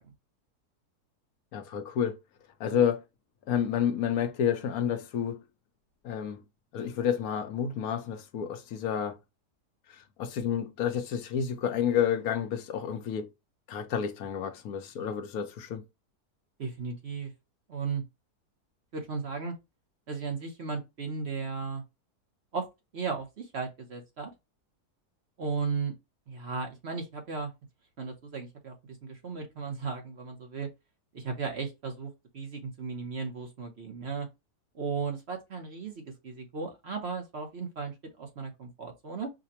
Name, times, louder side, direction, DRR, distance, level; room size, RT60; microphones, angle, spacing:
voice 1, 1.5-2.2 2.6-3.0 3.5-5.4 6.0-6.4 6.7-9.2 9.9-13.3 13.7-15.8, left 8 dB, 70° left, 1.0 m, -30 dB
voice 2, 16.6-17.3 17.7-18.0 18.9-19.5 20.1-21.8 22.5-22.6 22.9-24.3 25.4-25.9 26.3-27.5 28.0-28.7 29.0-30.7 31.1-34.3 34.7-39.3, right 5 dB, 50° right, 0.9 m, -35 dB
4.9 x 2.1 x 2.7 m
omnidirectional pair, 1.7 m